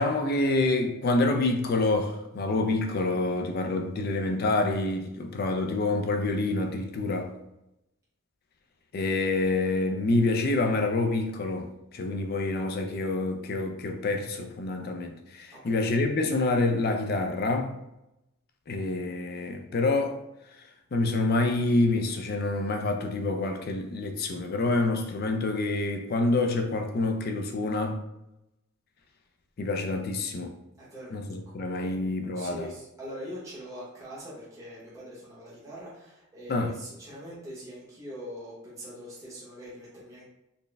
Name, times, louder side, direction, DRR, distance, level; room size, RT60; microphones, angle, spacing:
voice 1, 0.0-7.3 8.9-17.7 18.7-20.2 20.9-28.0 29.6-30.5 31.1-32.7 36.5-36.7, left 2 dB, 45° left, 0.4 m, -27 dB
voice 2, 15.5-15.9 30.8-31.1 31.8-31.9 32.3-40.2, equal, 15° right, 1.0 m, -42 dB
4.1 x 2.1 x 3.3 m
head